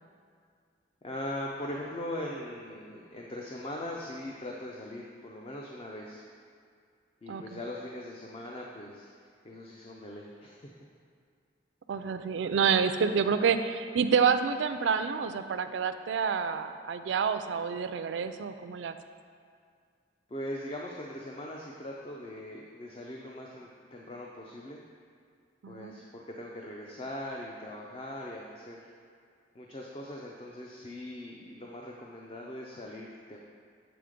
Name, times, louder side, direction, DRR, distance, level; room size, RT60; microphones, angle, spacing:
voice 1, 1.0-6.3 7.2-9.1 9.4-10.7 20.3-24.8 25.7-28.9 29.5-33.4, left 1 dB, 30° left, -2 dB, 0.5 m, -40 dB
voice 2, 7.3-7.6 11.9-18.9 25.6-26.0, right 6 dB, 90° right, 10 dB, 0.4 m, -28 dB
7.9 x 3.7 x 5.0 m, 2.2 s
head